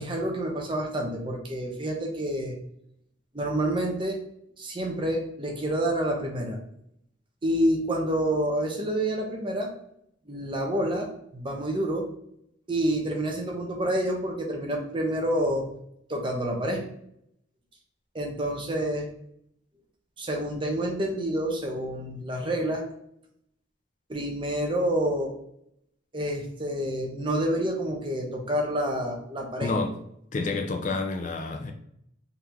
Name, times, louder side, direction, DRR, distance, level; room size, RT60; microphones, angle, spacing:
voice 1, 0.0-2.6 3.3-4.2 4.6-6.6 7.4-9.7 10.3-12.1 12.7-15.7 16.1-16.8 18.1-19.1 20.2-22.8 24.1-25.3 26.1-29.7, right 1 dB, 25° right, 0.8 m, -28 dB
voice 2, 29.6-29.9 30.3-31.7, left 3 dB, 40° left, 0.4 m, -29 dB
3.8 x 3.3 x 2.9 m
head